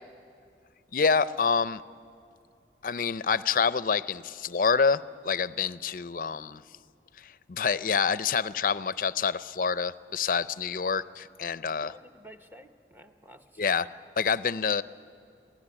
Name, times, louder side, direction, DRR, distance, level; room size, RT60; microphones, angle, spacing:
voice 1, 0.9-1.8 2.8-6.6 7.2-11.9 13.6-13.9 14.2-14.8, left 5 dB, 50° left, 16 dB, 0.5 m, -27 dB
voice 2, 11.6-13.8, equal, 10° right, 7 dB, 1.0 m, -52 dB
26.0 x 17.5 x 9.9 m, 2.5 s
head